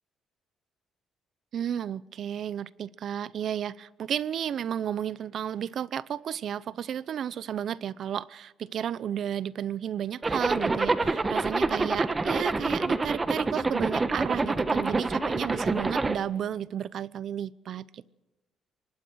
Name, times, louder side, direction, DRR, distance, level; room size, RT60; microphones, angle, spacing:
voice 1, 1.5-18.1, right 9 dB, 60° right, 19 dB, 0.7 m, -33 dB
Zipper (clothing), 10.2-16.2, right 3 dB, 25° right, 1.3 m, -27 dB
24.5 x 19.5 x 6.3 m, 1.0 s
cardioid pair, 90°, 0 cm